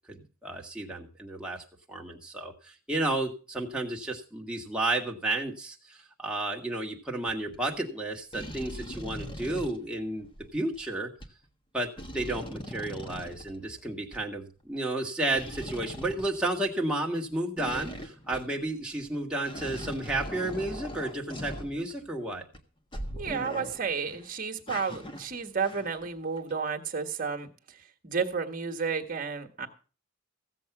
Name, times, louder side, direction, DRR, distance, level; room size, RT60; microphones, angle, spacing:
voice 1, 0.1-10.3 10.5-11.1 11.7-11.9 12.1-22.4, right 2 dB, 5° right, -1 dB, 1.8 m, -32 dB
sound 1, 7.3-7.6 8.3-10.8 11.2-11.3 12.0-14.2 15.3-16.9 17.6-18.7 19.1-19.2 19.4-22.2 22.5-22.6 22.9-24.2 24.7-26.1 26.4-26.5, equal, 25° left, 1.4 m, -41 dB
voice 2, 23.1-27.5 28.0-29.7, right 5 dB, 40° right, 4 dB, 1.6 m, -32 dB
15.5 x 7.6 x 6.0 m, 0.37 s
head